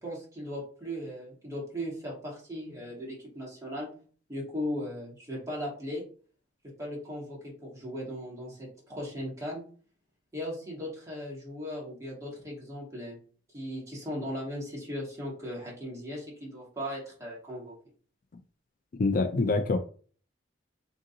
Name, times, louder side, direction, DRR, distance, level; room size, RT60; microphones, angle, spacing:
voice 1, 0.0-4.0 4.3-6.0 6.8-9.6 10.3-13.2 13.5-17.7, equal, 15° right, -4 dB, 1.7 m, -37 dB
voice 2, 19.0-19.8, left 3 dB, 45° left, 6 dB, 0.3 m, -25 dB
3.6 x 2.7 x 3.9 m, 0.42 s
head